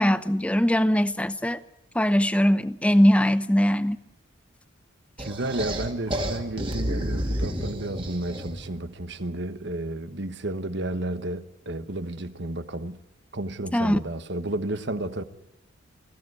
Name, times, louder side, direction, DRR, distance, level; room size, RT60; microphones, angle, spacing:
voice 1, 0.0-1.6 1.9-4.0 13.7-14.0, equal, 5° left, 0.7 m, -21 dB
sound 1, 5.2-8.7, equal, 25° right, 2.4 m, -30 dB
voice 2, 5.2-13.0 13.3-15.2, right 1 dB, 60° right, 1.3 m, -32 dB
20.0 x 15.5 x 9.6 m
head